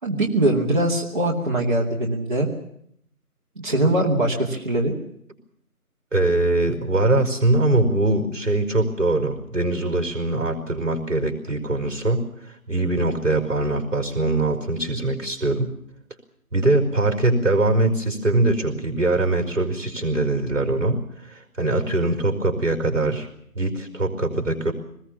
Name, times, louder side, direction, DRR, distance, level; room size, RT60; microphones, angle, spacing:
voice 1, 0.0-2.5 3.6-4.9, right 1 dB, 30° right, -2 dB, 2.5 m, -22 dB
voice 2, 6.1-15.7 16.5-23.3 23.6-24.7, right 2 dB, 55° right, 6 dB, 5.2 m, -22 dB
23.5 x 20.5 x 7.3 m, 0.70 s
figure-of-eight pair, 165°, 46 cm